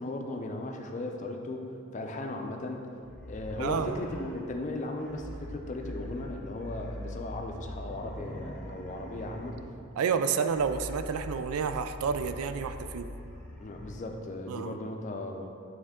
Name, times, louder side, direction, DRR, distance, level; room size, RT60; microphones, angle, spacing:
voice 1, 0.0-1.6 1.9-2.9 3.3-9.6 13.6-15.5, left 2 dB, 35° left, 3 dB, 0.5 m, -37 dB
sound 1, 3.0-14.0, left 1 dB, 5° left, 0.7 m, -43 dB
voice 2, 3.6-4.0 10.0-13.1 14.5-14.8, right 6 dB, 90° right, 10 dB, 0.4 m, -30 dB
8.8 x 3.6 x 3.6 m, 2.6 s
head